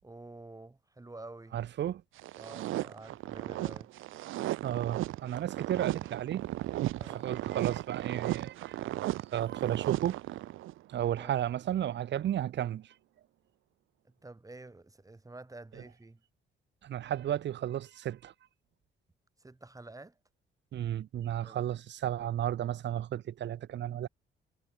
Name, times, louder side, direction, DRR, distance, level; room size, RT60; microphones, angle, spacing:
voice 1, 0.0-1.6 2.4-3.9 7.0-7.3 11.2-11.3 14.0-16.2 19.4-20.2 21.4-21.6, right 2 dB, 15° right, 5.4 m, -49 dB
voice 2, 1.5-2.0 4.6-6.5 7.1-8.8 9.3-10.2 10.9-12.9 16.8-18.3 20.7-24.1, right 11 dB, 65° right, 1.1 m, -33 dB
sound 1, 2.2-10.8, right 15 dB, 90° right, 2.5 m, -35 dB
cardioid pair, 90°, 20 cm